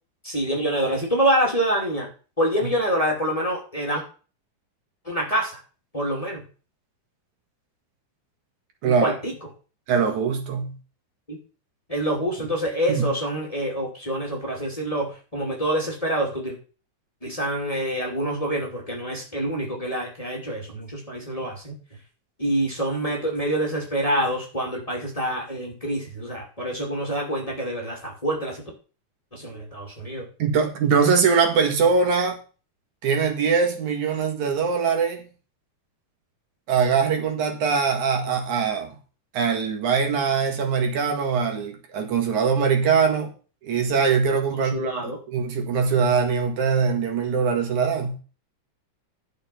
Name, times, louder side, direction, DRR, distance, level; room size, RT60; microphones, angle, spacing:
voice 1, 0.2-2.1 2.4-4.0 5.0-5.6 5.9-6.4 8.8-9.3 11.3-11.4 11.9-16.6 17.2-21.7 22.4-28.6 29.3-30.2 44.5-45.2, right 1 dB, 10° left, -1 dB, 2.7 m, -26 dB
voice 2, 8.8-9.1 9.9-10.8 12.9-13.1 30.4-32.4 33.0-35.2 36.7-39.0 39.3-43.3 43.6-48.2, right 5 dB, 80° right, 4 dB, 3.2 m, -22 dB
11.5 x 6.3 x 5.7 m, 0.36 s
omnidirectional pair, 3.3 m